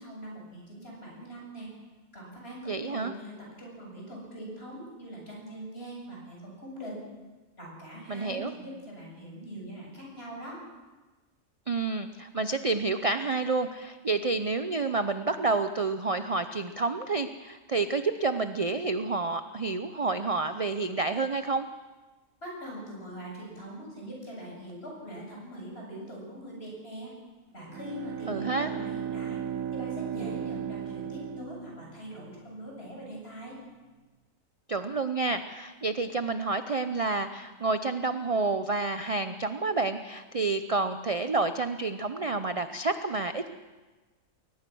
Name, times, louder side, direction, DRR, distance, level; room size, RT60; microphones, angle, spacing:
voice 1, 0.0-1.7 2.1-7.0 7.6-10.6 22.4-27.1 27.5-29.4 29.7-33.6, right 1 dB, 45° left, -2 dB, 7.8 m, -42 dB
voice 2, 2.7-3.1 8.1-8.5 11.7-21.7 28.3-28.7 34.7-43.5, right 3 dB, 35° right, 9 dB, 0.6 m, -29 dB
Bowed string instrument, 27.6-32.3, right 9 dB, 90° right, 1.3 m, -36 dB
21.5 x 20.0 x 6.2 m, 1.2 s
omnidirectional pair, 1.4 m